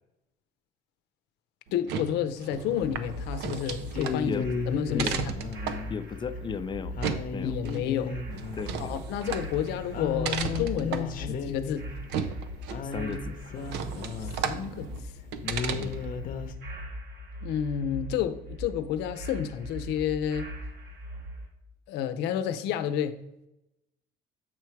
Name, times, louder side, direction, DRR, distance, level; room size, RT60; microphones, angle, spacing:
voice 1, 1.7-5.3 7.4-8.1 8.8-11.9 14.2-14.9 17.4-20.5 21.9-23.2, left 9 dB, 90° left, 0.6 m, -30 dB
sound 1, 1.7-16.2, right 7 dB, 85° right, 0.6 m, -36 dB
sound 2, 2.8-21.5, equal, 65° right, 1.6 m, -40 dB
sound 3, 3.7-14.7 15.1-15.2 15.4-16.5, left 5 dB, 55° left, 0.7 m, -35 dB
voice 2, 5.9-6.9 7.3-7.5 8.5-8.9 12.8-13.6 15.8-16.0, left 6 dB, 30° left, 0.5 m, -35 dB
7.6 x 4.7 x 4.5 m
cardioid pair, 110°, 17 cm